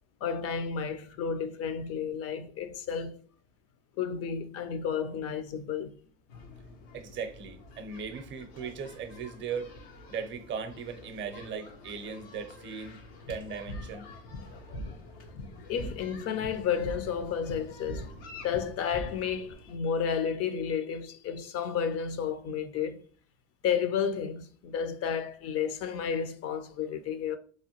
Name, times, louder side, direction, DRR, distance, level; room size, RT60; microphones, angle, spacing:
voice 1, 0.2-3.2 4.0-6.0 15.7-18.1 18.4-23.0 23.6-27.4, left 7 dB, 50° left, 0.5 m, -32 dB
sound 1, 6.3-19.8, left 3 dB, 85° left, 0.7 m, -50 dB
voice 2, 6.9-9.7 10.1-14.1, right 6 dB, 40° right, 0.6 m, -38 dB
sound 2, 13.2-19.5, equal, 70° left, 1.0 m, -42 dB
3.0 x 2.2 x 2.9 m
supercardioid pair, 80°, 30 cm